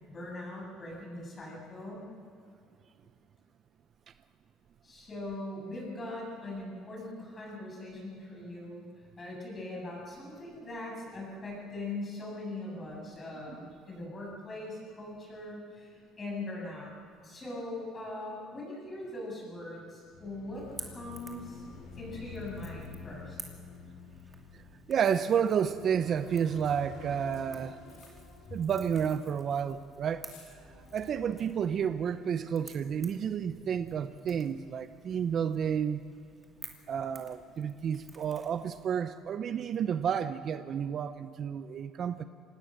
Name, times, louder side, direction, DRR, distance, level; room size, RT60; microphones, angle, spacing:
voice 1, 0.1-2.1 4.8-8.8 9.2-15.9 16.2-16.9 17.2-21.6 22.0-23.4 28.5-28.6, left 2 dB, 25° left, -2 dB, 8.0 m, -41 dB
sound 1, 20.1-29.7 30.4-32.4, left 5 dB, 65° left, 5.9 m, -50 dB
Crackle / Crack, 20.5-38.9, right 2 dB, 15° right, 2.7 m, -53 dB
sound 2, 24.6-24.7 24.9-26.0 26.4-29.4 29.7-29.8 30.1-30.5, left 6 dB, 85° left, 6.6 m, -60 dB
voice 2, 24.9-27.8 28.5-30.3 30.9-36.0 36.9-42.2, right 8 dB, 40° right, 11 dB, 0.6 m, -31 dB
25.5 x 19.0 x 6.6 m, 2.5 s
cardioid pair, 135°, 0 cm